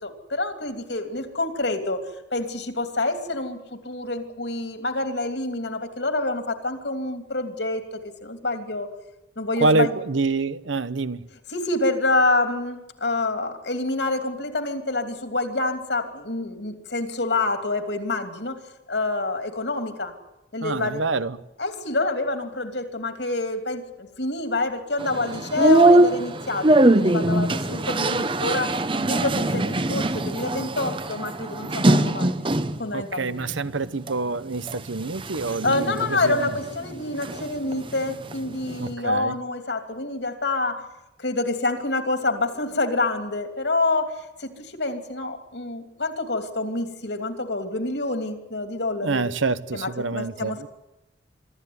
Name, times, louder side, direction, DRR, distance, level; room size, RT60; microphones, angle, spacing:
voice 1, 0.0-2.0 2.3-8.9 9.4-9.9 11.5-18.6 18.9-20.1 20.5-21.0 21.6-28.8 29.0-32.3 32.8-33.4 35.5-40.8 41.2-49.3 49.7-50.7, left 2 dB, 65° left, 2.9 m, -27 dB
voice 2, 9.6-11.2 20.6-21.4 32.9-36.5 38.8-39.4 49.0-50.7, right 3 dB, 90° right, 1.0 m, -26 dB
sound 1, 25.0-32.9 33.3-34.1 34.6-37.5 37.7-38.9, right 2 dB, 25° right, 0.8 m, -22 dB
25.0 x 14.0 x 9.6 m
head